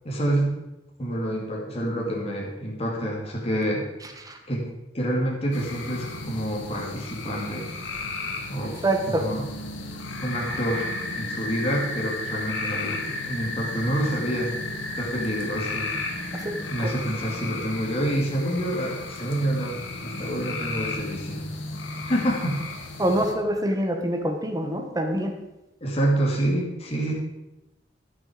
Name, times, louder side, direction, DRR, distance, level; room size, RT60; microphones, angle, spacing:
voice 1, 0.0-0.6 1.0-3.8 4.5-4.7 4.9-7.7 8.5-8.8 9.1-9.5 10.2-14.5 15.0-15.9 16.7-21.4 22.1-22.6 25.8-27.1, right 1 dB, 35° left, -2 dB, 2.4 m, -27 dB
sound 1, 5.5-23.3, left 2 dB, 90° left, 1.6 m, -34 dB
voice 2, 8.8-9.2 16.3-16.6 23.0-25.3, right 1 dB, 20° right, 4 dB, 1.3 m, -25 dB
13.5 x 6.3 x 5.1 m, 0.95 s
head